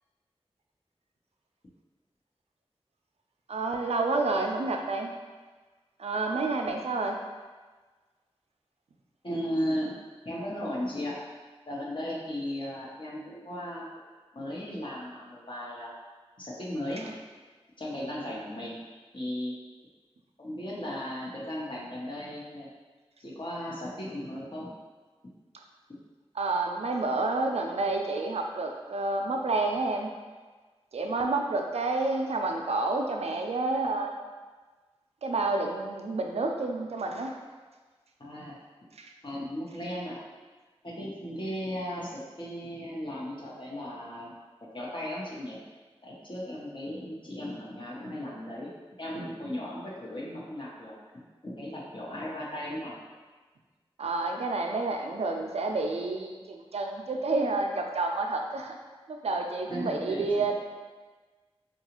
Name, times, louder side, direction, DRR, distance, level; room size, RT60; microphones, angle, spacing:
voice 1, 3.5-5.1 6.0-7.2 26.4-30.1 30.9-34.3 35.2-37.4 39.0-39.1 54.0-58.8 59.1-60.6, right 3 dB, 80° right, 3 dB, 0.4 m, -29 dB
voice 2, 9.2-10.0 10.2-11.2 11.7-13.8 14.3-15.9 16.4-17.0 17.8-18.8 19.1-19.5 20.4-22.7 23.2-24.7 25.9-26.0 38.2-38.6 39.2-40.2 40.8-44.3 44.7-45.6 46.0-48.7 49.0-50.9 51.4-53.0 59.7-60.5, equal, 50° left, -5 dB, 0.9 m, -36 dB
3.8 x 2.3 x 2.9 m, 1.3 s
wide cardioid pair, 55°, 11 cm